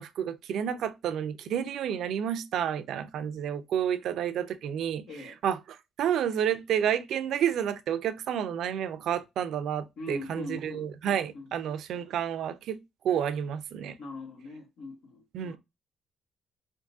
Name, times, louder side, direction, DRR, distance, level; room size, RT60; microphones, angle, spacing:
voice 1, 0.0-5.0 5.4-5.6 6.0-12.8 13.0-14.0 15.3-15.6, right 9 dB, 75° right, 0.4 m, -30 dB
voice 2, 5.1-5.4 10.0-11.5 14.0-15.6, left 2 dB, 75° left, 1.0 m, -42 dB
3.6 x 2.6 x 2.5 m
cardioid pair, 90°, 0 cm